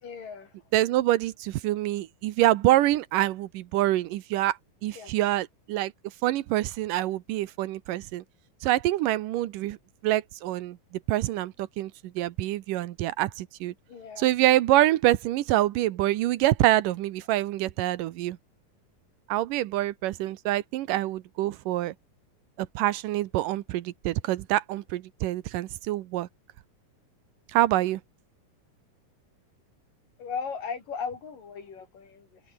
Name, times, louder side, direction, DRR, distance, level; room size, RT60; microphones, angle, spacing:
voice 1, 0.0-0.5 5.0-5.1 13.9-14.3 30.2-32.4, left 6 dB, 80° left, 6.0 m, -37 dB
voice 2, 0.7-5.9 6.2-8.2 8.6-9.8 10.0-10.8 11.1-13.7 14.2-18.4 19.3-21.9 22.6-26.3 27.5-28.0, right 15 dB, 80° right, 2.5 m, -26 dB
omnidirectional pair, 3.8 m